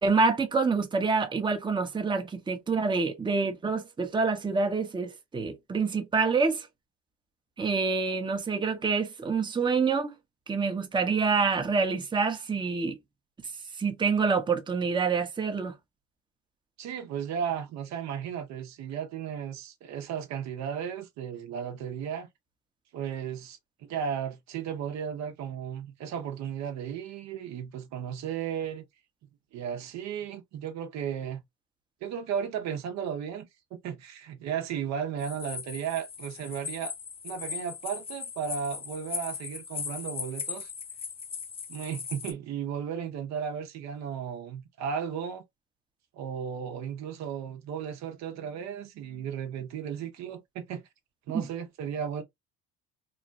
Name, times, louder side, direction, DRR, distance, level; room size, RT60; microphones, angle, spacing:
voice 1, 0.0-6.7 7.6-10.1 10.5-13.0 13.8-15.7 51.3-51.4, right 4 dB, 15° right, 0.7 m, -27 dB
voice 2, 16.8-22.3 22.9-23.6 23.9-28.9 29.5-31.4 32.0-36.9 37.2-40.7 41.7-45.4 46.1-50.8 51.3-52.2, right 8 dB, 60° right, 0.7 m, -35 dB
sound 1, 35.2-42.3, left 6 dB, 20° left, 0.3 m, -38 dB
3.0 x 2.1 x 2.5 m
supercardioid pair, 75°, 31 cm